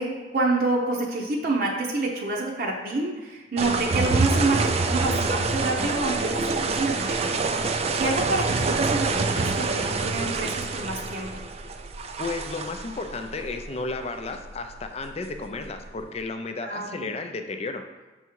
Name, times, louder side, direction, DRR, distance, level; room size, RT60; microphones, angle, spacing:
voice 1, 0.0-7.4 8.0-11.4 16.6-17.1, right 2 dB, 50° right, -1 dB, 0.8 m, -28 dB
sound 1, 3.6-16.1, right 3 dB, 35° right, 0.4 m, -27 dB
voice 2, 12.2-17.8, left 3 dB, 35° left, 6 dB, 0.5 m, -33 dB
6.8 x 3.6 x 4.6 m, 1.2 s
head